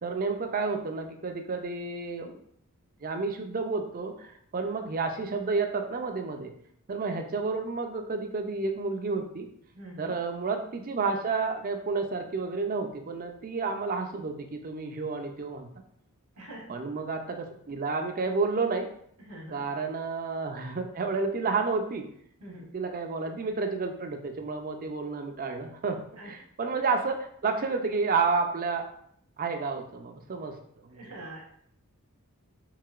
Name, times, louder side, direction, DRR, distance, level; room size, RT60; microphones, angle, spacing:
voice 1, 0.0-2.4 3.0-6.5 6.9-9.5 10.0-15.7 16.7-18.9 19.5-22.1 22.7-28.9 29.4-30.6 30.8-31.0, right 4 dB, 40° right, 5 dB, 0.5 m, -30 dB
voice 2, 9.7-10.1 16.3-16.8 19.2-19.6 22.4-22.7 26.2-26.3 30.9-31.4, right 1 dB, 80° right, -2 dB, 1.4 m, -44 dB
4.7 x 3.7 x 2.4 m, 0.66 s
head